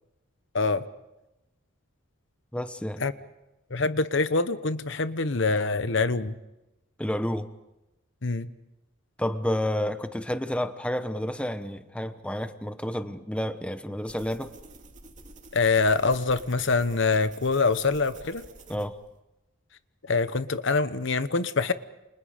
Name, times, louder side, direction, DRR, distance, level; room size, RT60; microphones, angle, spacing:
voice 1, 2.5-3.0 7.0-7.5 9.2-14.5 18.7-18.9, left 1 dB, 5° left, 10 dB, 1.0 m, -30 dB
voice 2, 3.7-6.3 8.2-8.5 15.5-18.4 20.1-21.7, left 3 dB, 60° left, 13 dB, 1.0 m, -25 dB
sound 1, 14.1-19.2, right 3 dB, 35° right, 2.6 m, -49 dB
29.5 x 27.0 x 5.1 m, 0.97 s
head